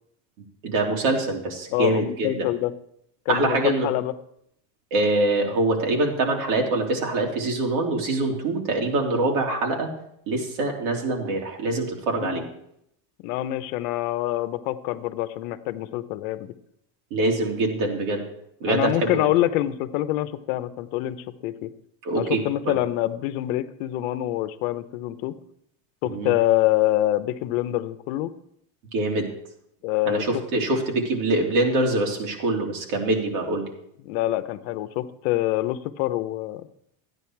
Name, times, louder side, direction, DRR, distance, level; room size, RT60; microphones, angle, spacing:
voice 1, 0.6-2.5 3.3-3.9 4.9-9.9 10.3-12.4 17.1-18.2 18.6-19.3 22.0-22.8 26.0-26.3 28.9-29.3 30.0-33.6, right 2 dB, 75° right, 0 dB, 3.3 m, -24 dB
voice 2, 1.7-2.7 3.3-4.1 12.2-12.4 13.2-16.5 18.7-21.7 22.1-25.4 26.0-28.3 29.8-30.3 34.0-36.7, left 15 dB, 70° left, 12 dB, 1.0 m, -25 dB
13.5 x 9.6 x 4.7 m, 0.72 s
cardioid pair, 170°, 43 cm